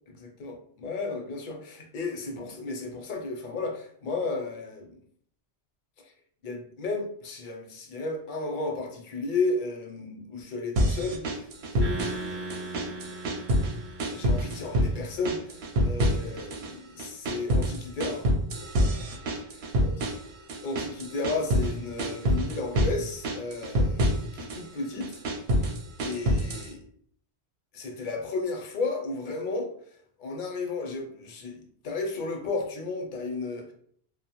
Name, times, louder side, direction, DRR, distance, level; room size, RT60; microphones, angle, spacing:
voice 1, 0.1-4.9 6.0-6.1 6.4-11.2 11.7-13.1 14.1-18.3 19.8-20.1 20.6-25.7 26.0-26.8 27.7-29.7 30.2-33.7, left 3 dB, 60° left, 3 dB, 0.6 m, -33 dB
sound 1, 10.8-12.3 12.5-13.7 14.0-14.9 15.3-16.7 17.0-21.7 22.0-23.0 23.2-24.6 25.0-26.7, equal, 70° right, 0.8 m, -26 dB
sound 2, 11.8-15.3, right 2 dB, 40° right, 0.3 m, -39 dB
2.6 x 2.1 x 2.9 m, 0.62 s
omnidirectional pair, 1.1 m